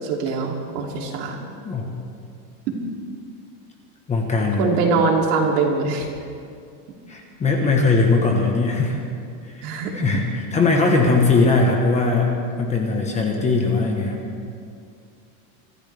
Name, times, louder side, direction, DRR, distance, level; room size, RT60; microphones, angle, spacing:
voice 1, 0.0-1.4 4.6-6.1 9.6-9.9, right 4 dB, 65° right, 0 dB, 3.1 m, -22 dB
voice 2, 4.1-4.7 7.1-9.0 9.6-10.2 10.5-12.3 12.6-14.2, left 3 dB, 15° left, 1 dB, 1.2 m, -20 dB
24.5 x 14.5 x 3.4 m, 2.4 s
supercardioid pair, 170°, 50 cm